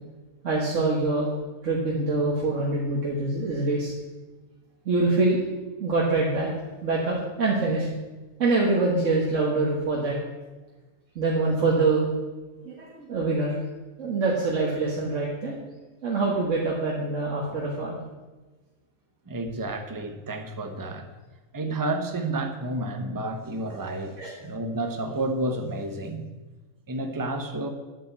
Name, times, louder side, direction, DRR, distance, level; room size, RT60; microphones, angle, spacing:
voice 1, 0.4-1.3 1.6-3.9 4.9-5.4 5.8-6.5 6.8-7.9 8.4-10.2 11.2-12.1 12.7-13.5 14.0-15.5 16.0-18.0 24.2-24.4, right 3 dB, 60° right, -3 dB, 1.8 m, -24 dB
voice 2, 19.3-21.1 21.5-26.3 26.9-27.7, right 2 dB, 15° right, 6 dB, 0.9 m, -30 dB
8.7 x 7.5 x 8.1 m, 1.2 s
omnidirectional pair, 1.5 m